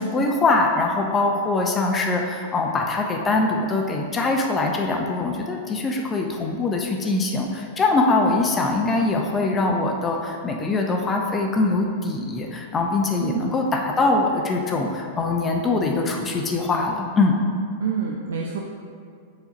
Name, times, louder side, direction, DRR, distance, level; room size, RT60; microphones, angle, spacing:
voice 1, 0.0-17.3, left 3 dB, 20° left, 1 dB, 0.7 m, -23 dB
voice 2, 13.2-13.5 17.8-18.6, right 7 dB, 80° right, -1 dB, 0.6 m, -27 dB
4.7 x 4.3 x 5.2 m, 2.4 s
hypercardioid pair, 115°, 0 cm